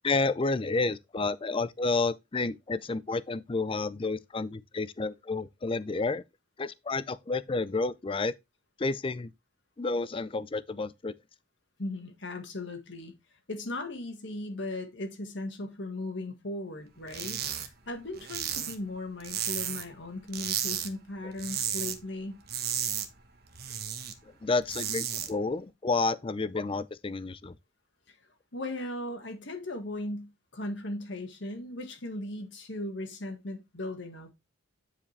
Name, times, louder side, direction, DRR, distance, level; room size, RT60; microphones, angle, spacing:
voice 1, 0.0-6.2 6.6-8.3 8.8-9.3 9.8-11.1 24.4-27.6, left 3 dB, 25° left, 0.4 m, -30 dB
voice 2, 11.8-13.1 13.5-22.4 28.1-28.2 28.5-34.3, left 2 dB, 60° left, 1.7 m, -37 dB
sound 1, 17.1-17.7 18.0-20.0 20.3-20.9 21.2-22.0 22.3-24.1 24.5-25.3, right 9 dB, 50° right, 1.2 m, -33 dB
9.7 x 5.0 x 3.3 m
head